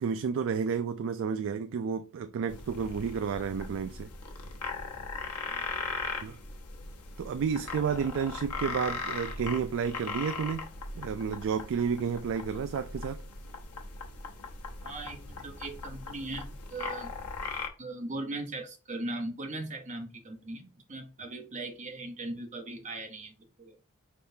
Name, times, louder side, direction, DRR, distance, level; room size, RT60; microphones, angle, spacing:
voice 1, 0.0-4.1 6.2-6.4 7.2-10.7 11.0-13.2, right 6 dB, 60° right, 0.3 m, -31 dB
sound 1, 2.5-17.7, left 4 dB, 85° left, 0.9 m, -39 dB
voice 2, 14.8-17.1 17.8-23.8, right 2 dB, 35° right, 0.8 m, -39 dB
4.6 x 3.6 x 2.7 m
head